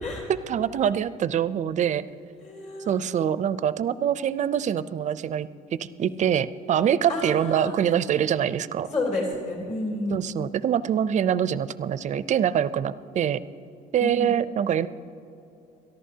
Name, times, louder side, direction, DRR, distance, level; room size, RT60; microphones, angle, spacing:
voice 1, 0.3-2.1 2.9-8.9 10.1-13.4 13.9-14.9, right 9 dB, 45° right, 16 dB, 0.4 m, -24 dB
voice 2, 2.4-3.0 7.1-7.8 8.9-10.3 14.0-14.3, left 2 dB, 45° left, 0 dB, 3.4 m, -30 dB
22.5 x 14.0 x 2.8 m, 2.9 s
cardioid pair, 110°, 17 cm